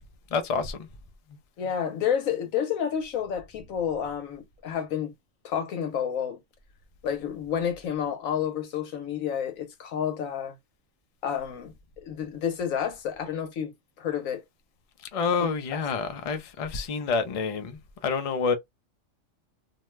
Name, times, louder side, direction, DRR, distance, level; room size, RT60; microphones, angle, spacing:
voice 1, 0.3-0.9 15.1-18.5, left 5 dB, 50° left, 0.4 m, -28 dB
voice 2, 1.6-5.1 5.4-6.4 7.0-10.6 11.2-14.4 15.4-15.8, left 8 dB, 90° left, 1.2 m, -30 dB
2.7 x 2.2 x 3.1 m
omnidirectional pair, 1.4 m